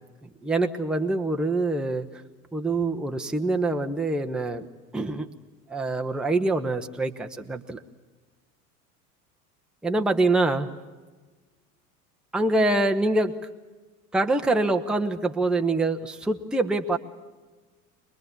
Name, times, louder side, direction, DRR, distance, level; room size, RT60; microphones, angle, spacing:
voice 1, 0.2-2.2 2.5-4.7 4.9-5.3 5.7-7.8 9.8-10.7 12.3-13.4 14.1-17.0, right 2 dB, ahead, 4 dB, 1.0 m, -25 dB
24.5 x 21.0 x 8.5 m, 1.3 s
figure-of-eight pair, 80°, 46 cm